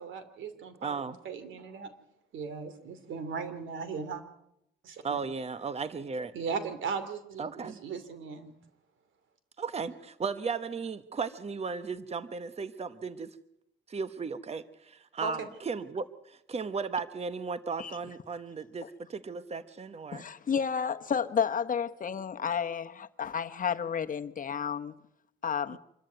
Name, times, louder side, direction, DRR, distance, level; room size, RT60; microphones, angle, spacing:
voice 1, 0.0-1.9 2.3-4.2 4.8-5.2 6.3-8.5 15.2-15.5, right 5 dB, 75° right, 2.8 m, -37 dB
voice 2, 0.8-1.2 5.0-6.3 7.4-7.8 9.6-13.3 13.9-20.2 25.7-25.8, right 5 dB, 30° right, 1.1 m, -36 dB
voice 3, 20.1-24.9 25.4-25.8, left 7 dB, 45° left, 1.1 m, -31 dB
25.5 x 14.0 x 9.4 m
cardioid pair, 90°, 20 cm